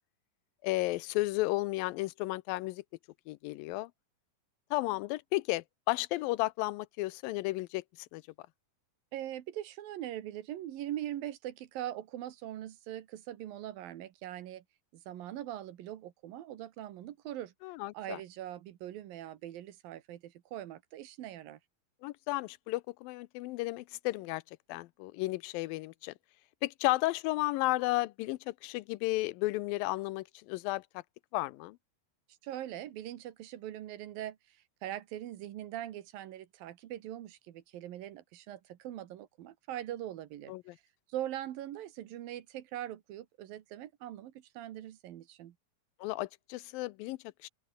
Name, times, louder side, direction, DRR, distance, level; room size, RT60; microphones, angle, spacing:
voice 1, 0.6-2.8 3.3-3.9 4.7-7.8 8.1-8.2 17.6-18.2 22.0-24.4 24.7-26.1 26.6-31.0 31.3-31.8 40.5-40.8 46.0-47.5, left 19 dB, 90° left, 2.4 m, -33 dB
voice 2, 9.1-14.6 14.9-17.5 17.9-21.6 32.4-40.5 41.1-45.6, right 12 dB, 85° right, 3.2 m, -42 dB
open air
omnidirectional pair, 4.0 m